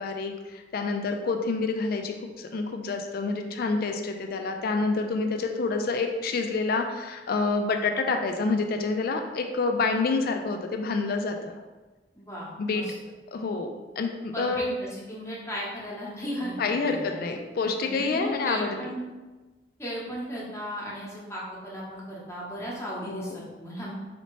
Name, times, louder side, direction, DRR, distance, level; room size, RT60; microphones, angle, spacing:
voice 1, 0.0-11.4 12.6-12.8 13.3-14.7 16.6-18.9 23.1-23.4, left 3 dB, 55° left, 5 dB, 0.3 m, -28 dB
voice 2, 12.1-12.9 14.3-17.3 17.6-19.0 19.8-23.9, equal, 15° left, -5 dB, 0.8 m, -36 dB
4.1 x 2.8 x 3.0 m, 1.2 s
head